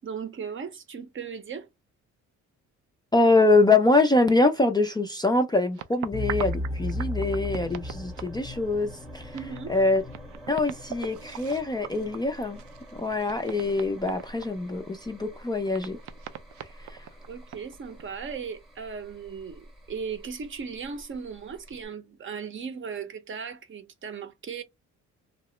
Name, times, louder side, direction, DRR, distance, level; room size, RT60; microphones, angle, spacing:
voice 1, 0.0-1.7 9.3-9.8 17.3-24.6, right 6 dB, 40° right, 0.7 m, -37 dB
voice 2, 3.1-9.3 9.7-10.0 10.5-12.6 12.9-16.0 16.8-17.1, left 2 dB, 15° left, 0.3 m, -24 dB
sound 1, 5.7-8.8 9.1-9.2 9.3-14.5 15.1-15.2 15.7-18.0, right 11 dB, 80° right, 0.5 m, -41 dB
sound 2, 6.1-21.9, left 1 dB, ahead, 0.8 m, -39 dB
2.8 x 2.0 x 3.1 m
cardioid pair, 90°, 30 cm